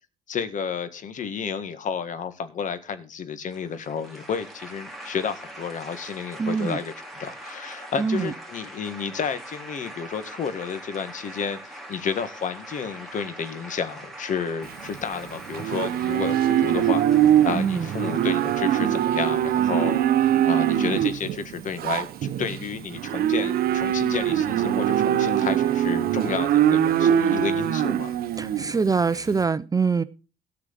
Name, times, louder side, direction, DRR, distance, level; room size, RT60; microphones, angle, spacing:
voice 1, 0.3-20.0 20.4-28.2, left 6 dB, 50° left, 1.7 m, -31 dB
sound 1, 3.5-19.6, right 1 dB, ahead, 3.2 m, -42 dB
voice 2, 6.4-6.8 8.0-8.3 17.5-17.9 28.4-30.0, right 5 dB, 20° right, 0.5 m, -24 dB
Livestock farm animals working animals, 14.6-29.4, right 10 dB, 65° right, 0.9 m, -23 dB
13.5 x 4.8 x 8.7 m
cardioid pair, 110°, 17 cm